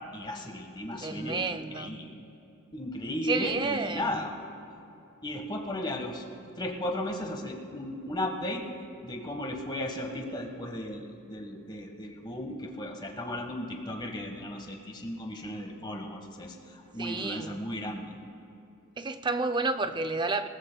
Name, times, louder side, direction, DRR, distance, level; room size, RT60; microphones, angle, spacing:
voice 1, 0.1-2.1 2.7-4.3 5.2-6.2 6.6-8.7 9.0-18.1, left 1 dB, 20° left, 2 dB, 1.4 m, -35 dB
voice 2, 0.9-2.0 3.2-4.3 17.0-17.6 19.0-20.5, right 3 dB, 20° right, 9 dB, 0.5 m, -31 dB
21.5 x 18.5 x 2.3 m, 2.8 s
head